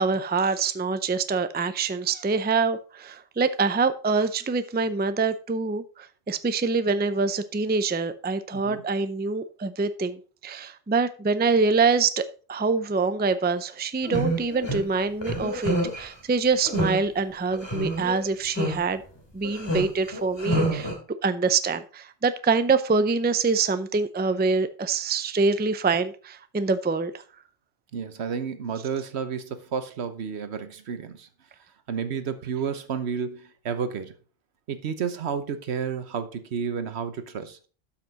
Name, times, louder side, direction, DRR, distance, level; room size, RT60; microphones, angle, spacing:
voice 1, 0.0-19.0 19.3-20.9 21.2-27.1, right 4 dB, 15° right, 0.4 m, -25 dB
sound 1, 14.0-14.8 15.2-16.0 16.6-17.0 17.5-18.2 18.6-18.8 19.4-20.9, right 1 dB, 25° left, 2.7 m, -27 dB
voice 2, 27.9-31.3 31.9-34.1 34.7-37.6, right 6 dB, 75° right, 1.2 m, -31 dB
12.5 x 5.9 x 4.0 m
omnidirectional pair, 1.1 m